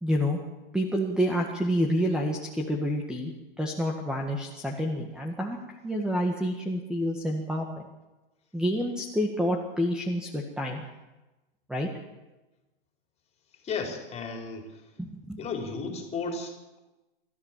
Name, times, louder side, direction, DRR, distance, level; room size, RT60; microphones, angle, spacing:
voice 1, 0.0-0.4 0.7-3.3 3.6-5.6 5.8-7.7 8.5-10.8 11.7-11.9 15.0-15.4, equal, 5° right, 2 dB, 1.8 m, -28 dB
voice 2, 13.6-14.7 15.4-16.8, left 4 dB, 20° left, 3 dB, 3.9 m, -34 dB
27.5 x 13.5 x 7.5 m, 1.1 s
hypercardioid pair, 140°, 30 cm